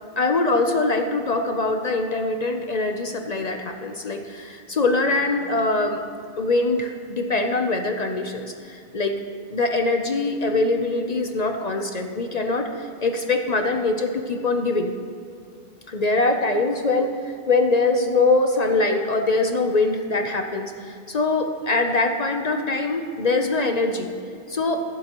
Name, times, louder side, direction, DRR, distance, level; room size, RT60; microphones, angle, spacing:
voice 1, 0.2-6.0 6.4-9.1 9.5-14.9 15.9-17.1 17.5-24.1 24.5-24.8, left 3 dB, 45° left, 5 dB, 0.7 m, -23 dB
23.0 x 7.7 x 3.0 m, 2.3 s
omnidirectional pair, 1.0 m